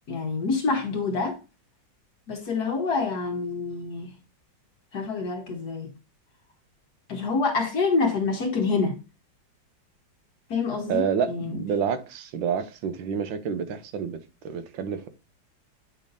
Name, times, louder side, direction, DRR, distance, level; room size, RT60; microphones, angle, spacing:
voice 1, 0.1-1.4 2.3-4.1 4.9-5.9 7.1-9.0 10.5-11.6, left 4 dB, 60° left, 1.4 m, -27 dB
voice 2, 10.9-14.2 14.4-15.1, right 7 dB, 85° right, 1.6 m, -28 dB
8.6 x 5.1 x 2.6 m
omnidirectional pair, 2.1 m